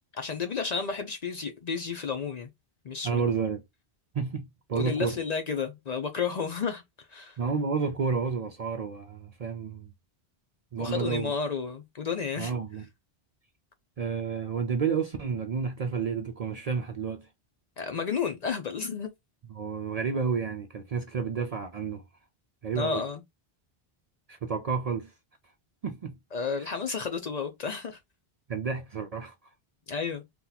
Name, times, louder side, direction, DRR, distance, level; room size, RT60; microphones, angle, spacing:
voice 1, 0.1-2.5 2.8-3.3 4.7-6.8 7.1-7.4 10.8-12.5 17.8-19.1 22.7-23.2 26.3-28.0 29.9-30.2, left 5 dB, 50° left, 0.5 m, -32 dB
voice 2, 3.0-3.6 4.1-5.2 7.4-9.9 10.7-11.3 12.4-12.9 14.0-17.3 19.5-22.0 22.6-23.0 24.3-25.1 25.8-26.2 26.6-27.0 28.5-29.5, right 5 dB, 55° right, 0.4 m, -31 dB
2.8 x 2.2 x 3.8 m
omnidirectional pair, 1.0 m